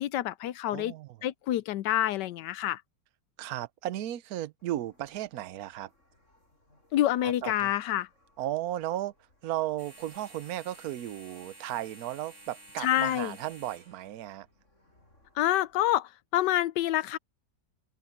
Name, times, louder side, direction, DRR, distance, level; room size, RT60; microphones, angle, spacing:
voice 1, 0.0-0.9 1.2-2.8 6.9-8.1 12.8-13.4 15.4-17.2, left 13 dB, 75° left, 1.2 m, -27 dB
voice 2, 0.7-1.2 3.4-5.9 7.2-7.7 8.4-9.1 9.4-14.5, right 13 dB, 65° right, 1.1 m, -35 dB
sound 1, 4.6-15.9, right 1 dB, 40° left, 7.5 m, -55 dB
omnidirectional pair, 1.9 m